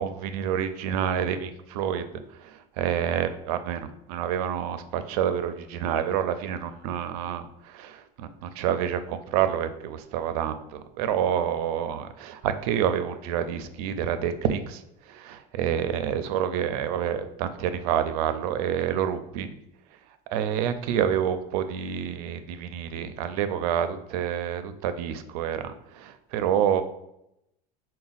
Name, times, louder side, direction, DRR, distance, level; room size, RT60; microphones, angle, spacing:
voice 1, 0.0-14.8 15.1-19.5 20.3-26.8, right 9 dB, 85° right, 10 dB, 0.4 m, -28 dB
3.9 x 2.2 x 4.0 m, 0.83 s
cardioid pair, 170°, 19 cm